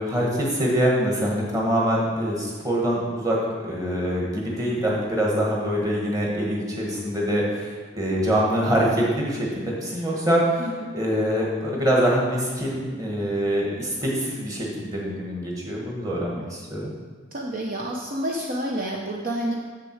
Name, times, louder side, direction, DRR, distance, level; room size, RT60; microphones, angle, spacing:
voice 1, 0.0-3.4 3.6-16.9, equal, 15° right, -3 dB, 1.4 m, -24 dB
voice 2, 10.6-11.0 17.3-19.6, right 1 dB, 45° right, -1 dB, 0.6 m, -29 dB
7.2 x 6.7 x 4.6 m, 1.5 s
head